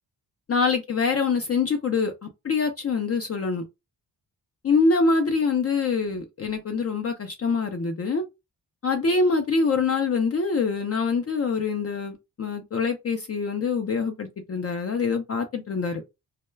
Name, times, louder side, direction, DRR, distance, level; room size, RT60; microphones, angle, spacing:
voice 1, 0.5-3.6 4.6-8.2 8.8-16.0, left 4 dB, 40° left, 0.4 m, -25 dB
2.2 x 2.1 x 3.1 m
wide cardioid pair, 120°, 40 cm